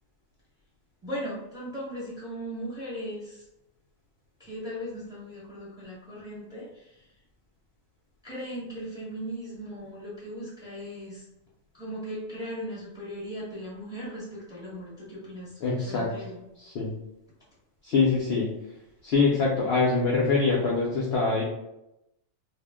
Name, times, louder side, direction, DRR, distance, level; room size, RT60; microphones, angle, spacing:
voice 1, 1.0-3.5 4.4-7.1 8.2-11.2 11.7-15.5 15.8-16.4, equal, 5° right, -7 dB, 0.7 m, -38 dB
voice 2, 15.6-16.1 16.6-16.9 17.8-18.5 19.0-21.4, left 4 dB, 65° left, -3 dB, 0.6 m, -24 dB
2.4 x 2.1 x 3.4 m, 0.87 s
omnidirectional pair, 1.6 m